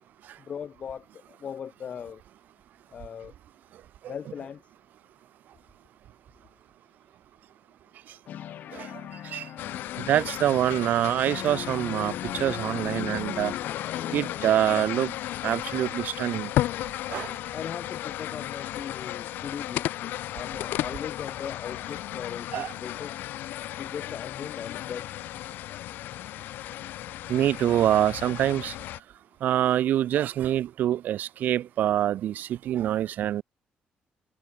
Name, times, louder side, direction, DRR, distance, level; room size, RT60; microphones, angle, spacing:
voice 1, 0.5-2.2 2.9-3.3 4.1-4.6 17.5-23.2 23.8-25.1, left 7 dB, 45° left, 6.9 m, -39 dB
sound 1, 8.3-11.0 11.3-14.9, left 11 dB, 65° left, 3.9 m, -39 dB
sound 2, 9.6-29.0, left 14 dB, 90° left, 0.6 m, -34 dB
voice 2, 10.0-13.5 14.1-15.1 15.4-16.5 17.1-17.3 22.5-22.7 27.3-28.7 29.4-33.4, right 11 dB, 65° right, 0.7 m, -25 dB
cardioid pair, 150°, 3 cm